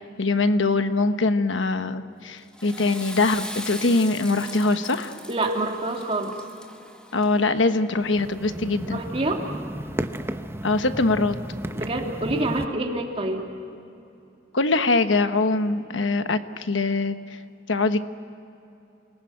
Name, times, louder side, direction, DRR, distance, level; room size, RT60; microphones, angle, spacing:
voice 1, 0.2-5.1 7.1-9.0 10.6-11.3 14.5-17.4 17.7-18.0, left 3 dB, 80° left, 9 dB, 1.2 m, -23 dB
Water / Toilet flush, 2.4-7.6, equal, 5° left, 1.8 m, -39 dB
voice 2, 5.3-6.3 8.9-9.4 11.7-13.5, right 2 dB, 35° right, 1 dB, 3.2 m, -26 dB
sound 1, 8.0-12.7, right 1 dB, 15° right, 0.8 m, -33 dB
28.5 x 20.0 x 9.4 m, 2.8 s
head